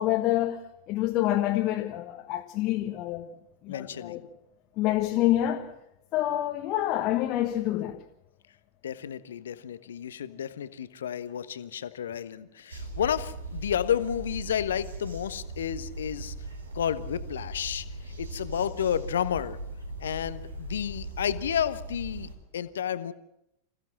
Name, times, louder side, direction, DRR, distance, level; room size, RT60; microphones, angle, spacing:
voice 1, 0.0-3.3 3.6-4.2 4.8-5.7 6.1-8.0, left 14 dB, 40° left, 1.4 m, -27 dB
voice 2, 3.7-4.2 8.8-16.3 16.7-17.9 18.2-19.6 20.0-23.1, left 9 dB, 65° left, 1.2 m, -31 dB
sound 1, 12.7-22.3, right 1 dB, 75° right, 3.8 m, -39 dB
27.0 x 16.0 x 7.4 m
figure-of-eight pair, 90°, 0 cm